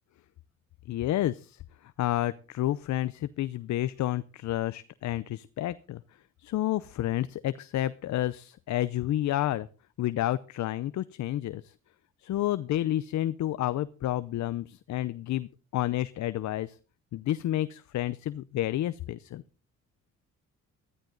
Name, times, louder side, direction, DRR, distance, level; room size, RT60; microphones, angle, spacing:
voice 1, 0.9-1.6 2.0-6.0 6.4-9.7 10.0-11.6 12.2-16.7 17.1-19.4, left 14 dB, 65° left, 15 dB, 0.7 m, -30 dB
14.0 x 13.5 x 3.9 m, 0.35 s
cardioid pair, 90°, 30 cm